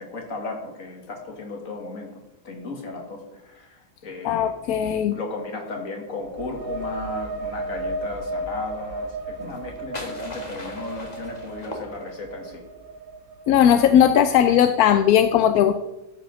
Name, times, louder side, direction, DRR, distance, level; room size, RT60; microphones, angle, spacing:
voice 1, 0.0-2.1 2.4-4.5 5.1-12.6, left 3 dB, 65° left, 2 dB, 2.3 m, -35 dB
voice 2, 4.2-5.1 13.5-15.7, left 9 dB, 90° left, 9 dB, 1.1 m, -17 dB
sound 1, 6.2-13.8, right 2 dB, 75° right, 1.5 m, -34 dB
sound 2, 9.4-12.5, left 1 dB, 30° left, 1.8 m, -39 dB
13.0 x 5.7 x 6.0 m, 0.99 s
omnidirectional pair, 1.5 m